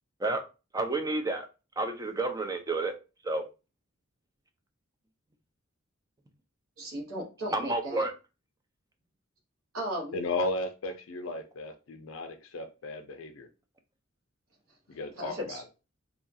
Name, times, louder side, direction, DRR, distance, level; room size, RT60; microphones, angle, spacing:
voice 1, 0.7-1.5 1.8-2.9 3.2-3.5 7.5-8.1, right 2 dB, 15° right, 5 dB, 0.4 m, -30 dB
voice 2, 6.8-8.0 9.7-10.1 15.1-15.6, right 1 dB, 75° right, -2 dB, 1.3 m, -36 dB
voice 3, 10.1-13.5 14.9-15.6, left 2 dB, 65° left, 6 dB, 0.4 m, -35 dB
2.8 x 2.3 x 2.6 m, 0.30 s
head